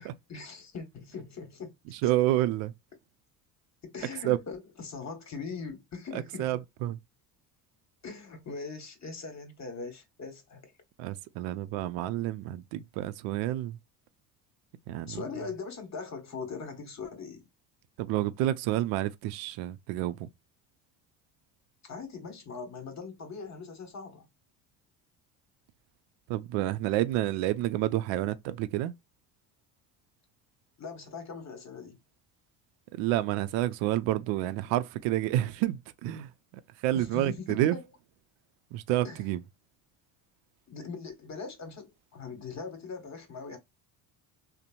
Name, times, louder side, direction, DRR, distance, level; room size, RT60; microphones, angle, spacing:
voice 1, 0.0-1.7 2.0-2.1 3.8-6.5 8.0-10.7 15.1-17.4 21.8-24.3 30.8-32.0 36.9-37.8 39.0-39.2 40.7-43.6, left 4 dB, 35° left, 1.3 m, -41 dB
voice 2, 2.0-2.7 4.2-4.4 6.1-7.0 11.0-13.8 14.9-15.2 18.0-20.3 26.3-28.9 33.0-36.3 36.8-37.8 38.7-39.4, right 14 dB, 70° right, 0.5 m, -29 dB
2.8 x 2.1 x 2.5 m
supercardioid pair, 75°, 46 cm